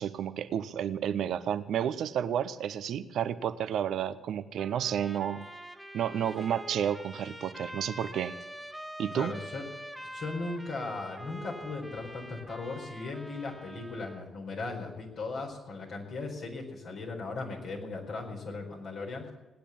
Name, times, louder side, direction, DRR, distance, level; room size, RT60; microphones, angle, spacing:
voice 1, 0.0-5.5 5.9-8.3 9.0-9.3, right 9 dB, 65° right, 13 dB, 0.8 m, -31 dB
Trumpet, 4.6-14.3, equal, ahead, 1.7 m, -45 dB
voice 2, 9.1-9.6 10.1-19.3, left 3 dB, 60° left, 0 dB, 4.4 m, -37 dB
18.5 x 10.0 x 7.2 m, 1.1 s
hypercardioid pair, 40°, 0 cm